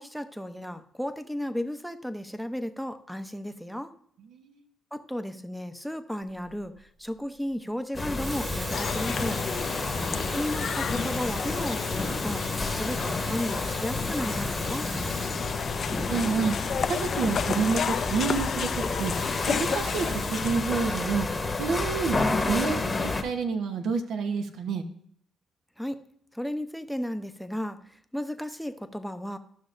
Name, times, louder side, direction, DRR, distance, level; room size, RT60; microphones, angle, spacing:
voice 1, 0.0-3.9 4.9-9.4 10.3-12.4 12.7-14.9 25.8-26.0 26.3-27.8 28.1-29.4, equal, ahead, 10 dB, 0.7 m, -34 dB
Water tap faucet / Sink (filling or washing), 6.4-6.6 7.9-16.1 18.8-20.4, right 2 dB, 40° right, 1.8 m, -41 dB
sound 1, 7.9-23.2, left 3 dB, 25° left, 1.0 m, -31 dB
sound 2, 8.7-20.8, left 7 dB, 55° left, 0.5 m, -32 dB
voice 2, 16.1-16.5 16.9-19.1 19.5-21.3 21.6-24.8, right 5 dB, 75° right, 6 dB, 1.0 m, -29 dB
12.5 x 6.2 x 2.6 m, 0.64 s
cardioid pair, 90°, 0 cm